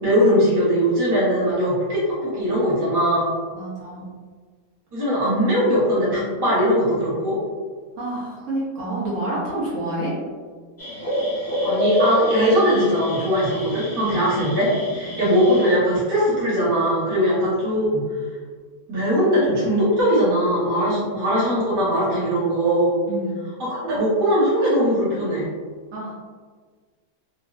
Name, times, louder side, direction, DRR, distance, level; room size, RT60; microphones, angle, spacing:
voice 1, 0.0-3.3 4.9-7.4 11.6-18.0 18.9-22.9 23.6-25.5, equal, 20° right, -9 dB, 0.8 m, -20 dB
voice 2, 3.5-4.0 8.0-10.1 15.0-15.2 20.9-21.2 23.1-23.4 25.9-26.1, right 1 dB, 60° right, -8 dB, 1.2 m, -28 dB
sound 1, 10.8-15.7, equal, 20° left, 0.4 m, -27 dB
3.0 x 2.5 x 2.4 m, 1.6 s
omnidirectional pair, 1.5 m